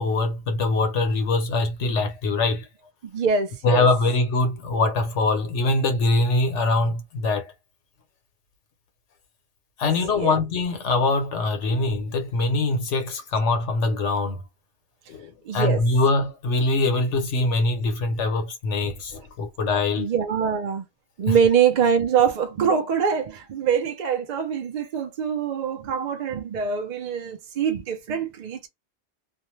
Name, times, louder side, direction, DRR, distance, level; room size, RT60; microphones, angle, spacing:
voice 1, 0.0-2.7 3.6-7.5 9.8-14.4 15.1-20.1 21.3-21.4, left 2 dB, 85° left, 1.1 m, -23 dB
voice 2, 3.1-3.9 10.2-10.4 15.5-15.8 20.0-20.8 21.2-28.7, right 7 dB, 60° right, 0.4 m, -24 dB
2.5 x 2.1 x 3.0 m
omnidirectional pair, 1.2 m